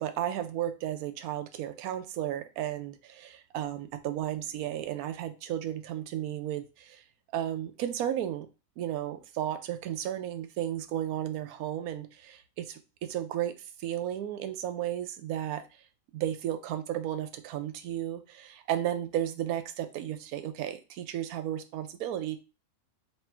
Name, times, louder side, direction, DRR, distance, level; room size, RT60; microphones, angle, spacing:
voice 1, 0.0-7.0 7.3-8.5 8.8-13.5 13.8-15.6 16.1-22.4, right 11 dB, 85° right, 1.1 m, -34 dB
3.3 x 2.9 x 4.4 m
omnidirectional pair, 1.5 m